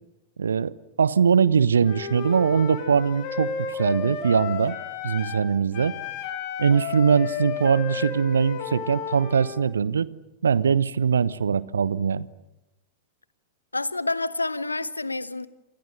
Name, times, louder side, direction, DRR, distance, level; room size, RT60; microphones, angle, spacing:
voice 1, 0.4-0.7 1.0-3.5 3.8-4.7 5.0-6.0 6.6-10.1 10.4-12.3, right 6 dB, 70° right, 1.1 m, -21 dB
Wind instrument woodwind instrument, 1.8-5.5 5.7-9.6, left 7 dB, 45° left, 5.8 m, -33 dB
voice 2, 13.7-15.5, left 2 dB, 80° left, 1.2 m, -28 dB
28.5 x 27.0 x 6.7 m
figure-of-eight pair, 90°, 0 cm